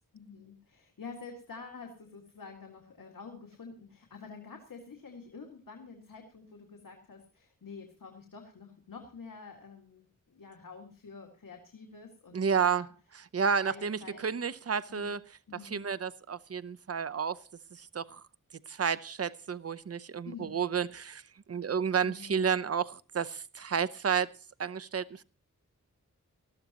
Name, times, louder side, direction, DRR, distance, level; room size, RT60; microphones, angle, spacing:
voice 1, 0.1-12.9 13.6-14.2 14.9-15.2 15.5-15.8 20.3-21.0 22.0-22.4, left 4 dB, 90° left, 2.0 m, -48 dB
voice 2, 12.3-12.9 13.3-15.2 15.6-17.4 17.7-18.2 18.7-21.2 21.5-24.3 24.6-25.2, right 6 dB, 50° right, 0.7 m, -31 dB
19.0 x 13.5 x 2.9 m
wide cardioid pair, 55°, 32 cm